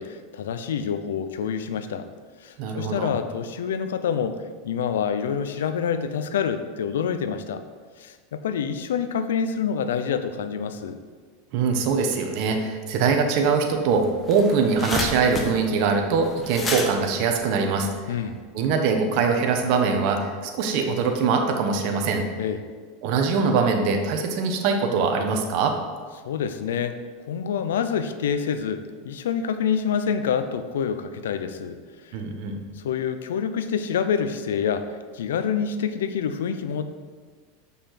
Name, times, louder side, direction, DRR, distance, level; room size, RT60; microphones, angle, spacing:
voice 1, 0.0-2.1 2.4-7.6 8.0-11.0 18.1-18.4 22.4-22.6 26.2-26.9 27.3-31.8 32.0-32.1 32.8-36.8, left 7 dB, 90° left, 10 dB, 0.6 m, -27 dB
voice 2, 2.6-3.1 11.5-17.9 18.5-22.2 23.0-25.7 32.1-32.6, right 5 dB, 55° right, 4 dB, 1.1 m, -22 dB
sound 1, 14.1-18.3, left 3 dB, 20° left, 1.1 m, -31 dB
6.7 x 5.4 x 5.9 m, 1.5 s
supercardioid pair, 120°, 0 cm